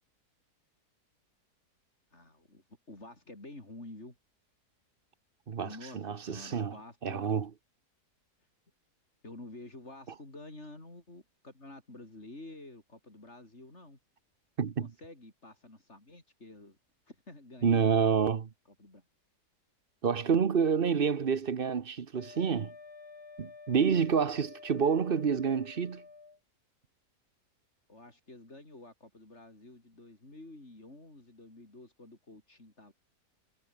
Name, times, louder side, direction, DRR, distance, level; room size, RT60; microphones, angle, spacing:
voice 1, 2.1-4.2 5.6-7.2 9.2-14.0 14.8-16.8 17.1-18.0 18.8-19.1 27.9-32.9, left 2 dB, 45° left, 6.2 m, -50 dB
voice 2, 5.5-6.8 7.0-7.5 14.6-14.9 17.6-18.5 20.0-22.7 23.4-26.0, right 6 dB, 40° right, 1.0 m, -28 dB
Wind instrument woodwind instrument, 22.1-26.4, left 4 dB, 70° left, 3.5 m, -51 dB
omnidirectional pair, 1.7 m